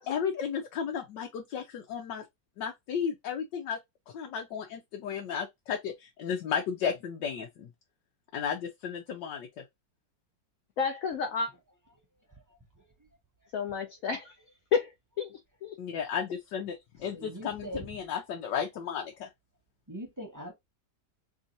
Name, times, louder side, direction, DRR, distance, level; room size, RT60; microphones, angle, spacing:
voice 1, 0.0-2.2 2.6-3.8 4.1-7.7 8.3-9.6 15.8-19.3, left 7 dB, 85° left, 1.4 m, -34 dB
voice 2, 10.8-11.5 13.5-14.3 14.7-15.8, left 6 dB, 60° left, 1.0 m, -31 dB
voice 3, 17.1-17.9 19.9-20.5, right 1 dB, 15° right, 0.9 m, -40 dB
3.5 x 2.6 x 4.0 m
omnidirectional pair, 1.9 m